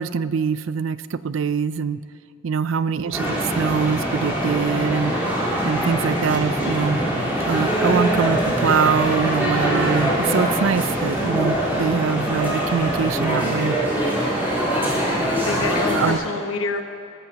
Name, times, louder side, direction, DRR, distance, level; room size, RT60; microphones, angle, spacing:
voice 1, 0.0-2.0 2.4-5.1 5.6-7.0 7.4-13.8 15.9-16.2, right 6 dB, 75° right, 15 dB, 0.5 m, -23 dB
voice 2, 2.8-3.4 14.9-16.8, left 3 dB, 90° left, 5 dB, 1.2 m, -29 dB
sound 1, 3.1-16.1, equal, 10° right, 4.2 m, -23 dB
21.5 x 13.5 x 3.0 m, 2.5 s
head